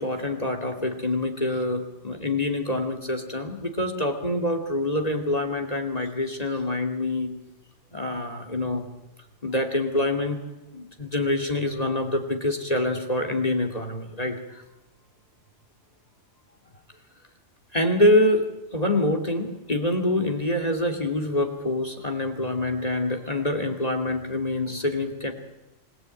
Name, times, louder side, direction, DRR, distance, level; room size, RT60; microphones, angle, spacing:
voice 1, 0.0-7.3 7.9-8.9 9.4-10.4 10.7-14.6 17.7-25.3, left 1 dB, 30° left, 4 dB, 2.6 m, -26 dB
28.0 x 18.5 x 9.1 m, 0.96 s
omnidirectional pair, 1.2 m